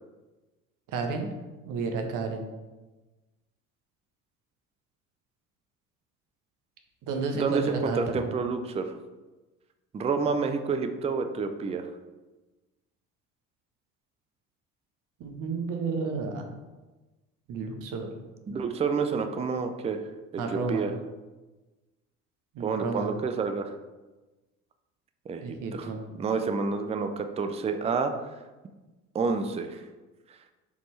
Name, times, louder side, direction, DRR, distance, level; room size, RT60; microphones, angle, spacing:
voice 1, 0.9-1.3 1.6-2.4 7.0-8.3 15.2-16.4 17.5-18.1 20.4-20.8 22.5-23.1 25.4-26.0, right 4 dB, 50° right, 4 dB, 1.1 m, -31 dB
voice 2, 7.3-8.9 9.9-11.9 18.5-20.0 20.3-20.9 22.6-23.7 25.3-25.9 26.2-28.1 29.1-29.8, right 5 dB, 15° right, 7 dB, 0.5 m, -29 dB
6.8 x 4.3 x 3.2 m, 1.2 s
figure-of-eight pair, 60°, 42 cm